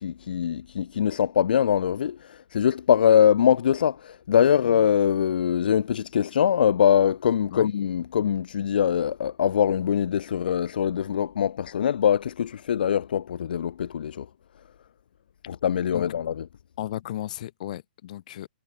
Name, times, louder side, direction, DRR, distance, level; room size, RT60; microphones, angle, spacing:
voice 1, 0.0-14.3 15.5-16.4, left 9 dB, 65° left, 0.4 m, -23 dB
voice 2, 16.8-18.5, left 13 dB, 50° left, 6.9 m, -35 dB
hypercardioid pair, 150°, 5 cm